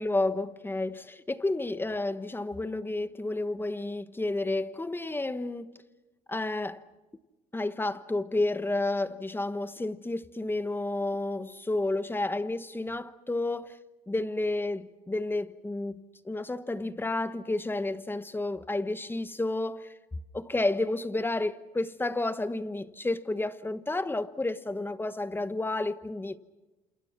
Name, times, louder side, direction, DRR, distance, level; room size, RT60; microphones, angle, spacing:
voice 1, 0.0-5.7 6.3-6.8 7.5-13.8 14.1-19.9 20.3-26.4, left 2 dB, 15° left, 1.1 m, -31 dB
29.0 x 28.0 x 6.0 m
cardioid pair, 110°, 17 cm